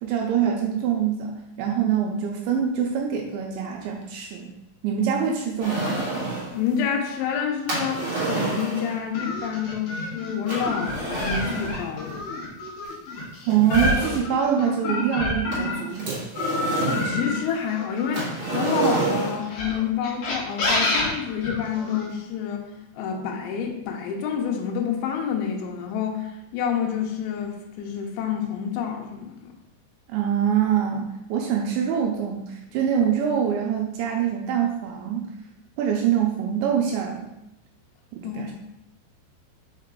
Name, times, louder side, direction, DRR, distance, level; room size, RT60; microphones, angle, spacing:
voice 1, 0.0-4.5 4.8-6.0 13.5-16.2 30.1-35.3 35.8-37.3 38.1-38.5, right 8 dB, 85° right, 0 dB, 2.8 m, -24 dB
sound 1, 5.6-6.6 7.7-9.0 10.5-11.8 12.8-12.9 13.5-14.4 15.5-17.1 18.1-19.5, right 3 dB, 55° right, 1.5 m, -28 dB
voice 2, 6.5-12.2 17.0-22.6 23.0-29.5 38.2-38.4, left 7 dB, 80° left, 1 dB, 3.1 m, -28 dB
sound 2, 9.1-15.9 16.4-18.7 19.4-22.1, left 2 dB, 60° left, 2.4 m, -28 dB
5.7 x 5.5 x 3.7 m, 0.86 s
omnidirectional pair, 5.5 m